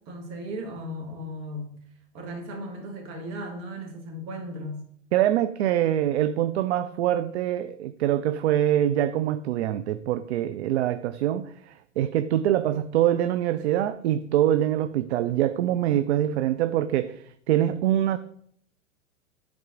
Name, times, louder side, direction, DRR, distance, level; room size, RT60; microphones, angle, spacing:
voice 1, 0.1-1.8 2.1-4.8, equal, 40° right, 1.8 m, -36 dB
voice 2, 5.1-18.2, right 12 dB, 55° right, 0.5 m, -24 dB
9.2 x 3.7 x 3.8 m
figure-of-eight pair, 100°, 39 cm